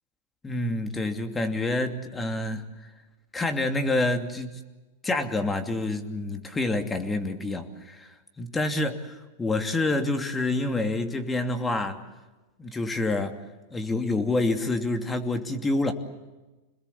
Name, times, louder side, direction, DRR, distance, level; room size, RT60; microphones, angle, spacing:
voice 1, 0.4-2.6 3.3-4.6 5.0-8.1 8.4-12.0 12.6-13.4 13.7-15.9, left 2 dB, 15° left, 7 dB, 2.8 m, -27 dB
27.5 x 21.0 x 8.5 m, 1.1 s
hypercardioid pair, 120°, 0 cm